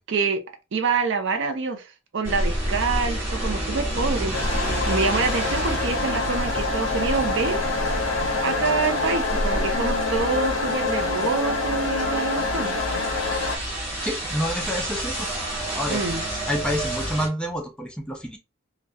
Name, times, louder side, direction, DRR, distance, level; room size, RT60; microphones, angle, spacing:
voice 1, 0.1-0.4 0.7-4.4 4.9-7.6 8.4-12.7 15.9-16.2, right 4 dB, 60° right, 0.5 m, -26 dB
sound 1, 2.2-17.3, right 1 dB, 10° right, 1.1 m, -29 dB
sound 2, 4.3-13.6, left 3 dB, 80° left, 0.5 m, -26 dB
voice 2, 14.0-15.3 15.7-16.0 16.5-18.4, equal, 5° left, 0.4 m, -28 dB
2.2 x 2.2 x 2.6 m
head